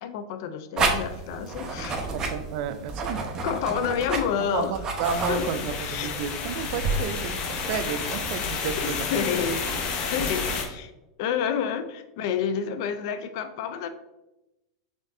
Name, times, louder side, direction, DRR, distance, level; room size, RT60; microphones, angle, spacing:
voice 1, 0.0-2.1 3.4-4.8 5.3-6.2 8.8-9.6 10.1-10.9 11.2-13.9, left 7 dB, 60° left, 10 dB, 0.5 m, -29 dB
sound 1, 0.8-7.0, right 3 dB, 25° right, 0.8 m, -31 dB
voice 2, 2.1-3.3 4.5-9.1 10.2-10.3, right 7 dB, 55° right, 11 dB, 0.4 m, -32 dB
sound 2, 5.0-10.6, left 5 dB, 40° left, 0.8 m, -30 dB
5.1 x 3.6 x 2.6 m, 0.96 s
hypercardioid pair, 115°, 3 cm